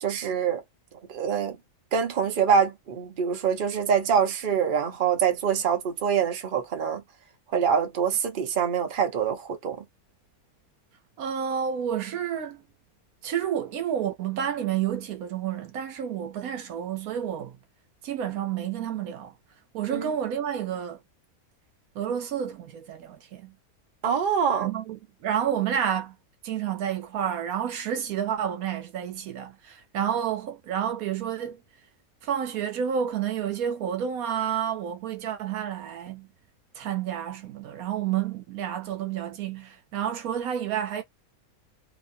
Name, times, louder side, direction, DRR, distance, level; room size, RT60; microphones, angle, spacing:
voice 1, 0.0-0.6 1.1-1.6 1.9-7.0 7.5-9.8 19.9-20.1 24.0-24.7, right 7 dB, 40° right, 0.8 m, -25 dB
voice 2, 11.2-12.6 13.2-17.6 18.0-19.3 19.7-21.0 22.0-23.5 24.6-26.1 26.4-31.6 32.2-36.3 36.8-41.0, right 9 dB, 75° right, 1.1 m, -30 dB
2.9 x 2.6 x 2.6 m
omnidirectional pair, 1.6 m